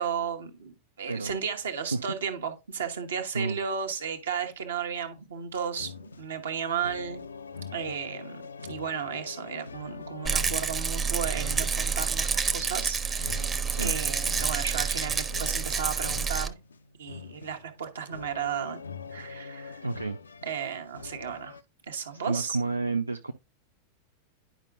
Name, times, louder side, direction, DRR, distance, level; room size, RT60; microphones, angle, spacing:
voice 1, 0.0-7.2 7.7-16.6 17.0-18.8 19.1-19.8 20.4-21.6 21.9-22.6, right 7 dB, 65° right, 1.0 m, -34 dB
sound 1, 5.8-21.6, left 5 dB, 75° left, 0.4 m, -44 dB
Rattle, 10.2-16.5, right 5 dB, 20° right, 0.7 m, -28 dB
voice 2, 19.8-20.2 22.1-23.3, right 3 dB, 80° right, 0.3 m, -30 dB
10.0 x 5.1 x 2.4 m
figure-of-eight pair, 90°, 0 cm